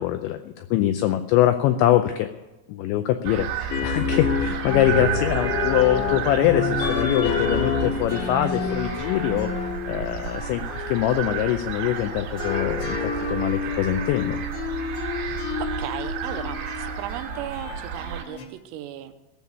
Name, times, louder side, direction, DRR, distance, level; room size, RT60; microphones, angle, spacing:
voice 1, 0.0-2.3 2.7-14.4, left 13 dB, 90° left, 8 dB, 2.5 m, -23 dB
sound 1, 3.2-18.2, right 9 dB, 60° right, 3.9 m, -32 dB
sound 2, 3.7-11.5 12.0-18.5, left 5 dB, 70° left, 3.5 m, -29 dB
voice 2, 15.6-19.1, right 12 dB, 90° right, 9 dB, 3.5 m, -35 dB
18.0 x 7.3 x 9.4 m, 1.0 s
omnidirectional pair, 6.0 m